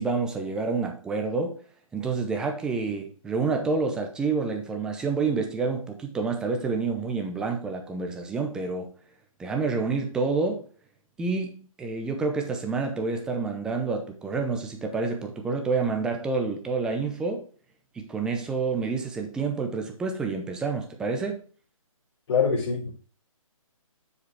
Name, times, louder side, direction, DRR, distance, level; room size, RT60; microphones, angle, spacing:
voice 1, 0.0-1.6 1.9-8.9 9.4-10.6 11.2-17.5 17.9-21.4, right 4 dB, 5° right, 0.6 m, -28 dB
voice 2, 22.3-22.9, left 6 dB, 45° left, 4.1 m, -24 dB
7.0 x 4.9 x 4.7 m
hypercardioid pair, 155°, 18 cm